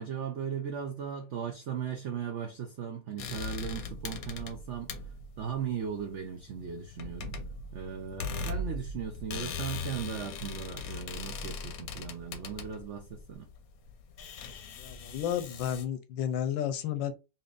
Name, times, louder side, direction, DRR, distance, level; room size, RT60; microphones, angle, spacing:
voice 1, 0.0-4.9 5.4-7.4 7.7-13.5, right 8 dB, 85° right, 0.6 m, -37 dB
sound 1, 3.2-15.8, left 4 dB, 65° left, 0.9 m, -40 dB
voice 2, 14.8-17.1, left 9 dB, 90° left, 1.4 m, -32 dB
4.3 x 2.9 x 2.4 m
omnidirectional pair, 2.0 m